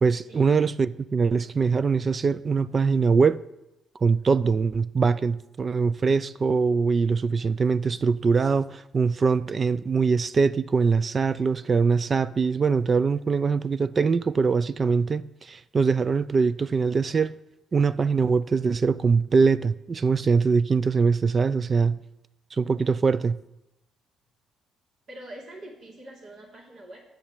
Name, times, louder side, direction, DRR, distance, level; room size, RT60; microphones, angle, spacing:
voice 1, 0.0-3.4 4.0-17.4 17.7-22.0 22.6-23.4, right 5 dB, 40° right, 0.4 m, -23 dB
voice 2, 25.1-27.0, right 1 dB, 65° right, 3.2 m, -44 dB
8.9 x 6.5 x 8.3 m
cardioid pair, 90°, 0 cm